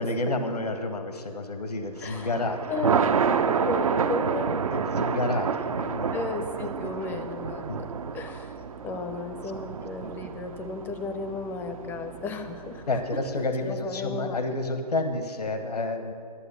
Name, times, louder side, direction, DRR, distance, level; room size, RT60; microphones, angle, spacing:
voice 1, 0.0-2.7 4.7-6.2 6.8-7.2 7.7-7.8 12.9-16.1, left 2 dB, 75° left, 7 dB, 0.9 m, -30 dB
voice 2, 2.0-2.4 2.7-3.1 3.6-4.5 6.1-7.9 8.1-8.6 8.8-13.0 13.6-14.4, left 3 dB, 10° left, 7 dB, 0.5 m, -34 dB
Thunder, 2.0-13.3, right 6 dB, 60° right, 0.6 m, -29 dB
11.5 x 8.0 x 6.8 m, 2.5 s
figure-of-eight pair, 125°, 20 cm